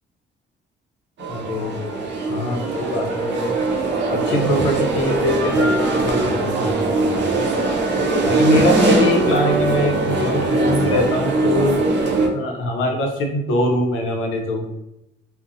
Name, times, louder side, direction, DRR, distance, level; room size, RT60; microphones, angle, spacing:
voice 1, 1.2-2.0 2.3-3.5 4.1-6.8 8.2-11.8 12.3-14.7, left 1 dB, 85° left, 2 dB, 0.6 m, -23 dB
sound 1, 1.2-12.3, right 2 dB, 60° right, 0.6 m, -20 dB
2.6 x 2.0 x 2.5 m, 0.89 s
cardioid pair, 90°, 20 cm